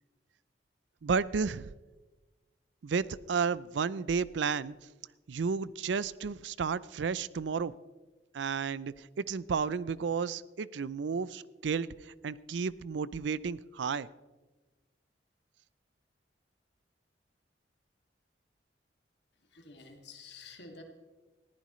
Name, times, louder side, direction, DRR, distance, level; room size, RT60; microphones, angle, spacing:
voice 1, 1.0-1.7 2.8-4.7 5.3-7.7 8.3-11.9 12.2-14.1, right 5 dB, 80° right, 19 dB, 0.4 m, -32 dB
voice 2, 19.4-20.8, left 4 dB, 70° left, 2 dB, 2.3 m, -50 dB
20.0 x 15.0 x 3.1 m, 1.3 s
head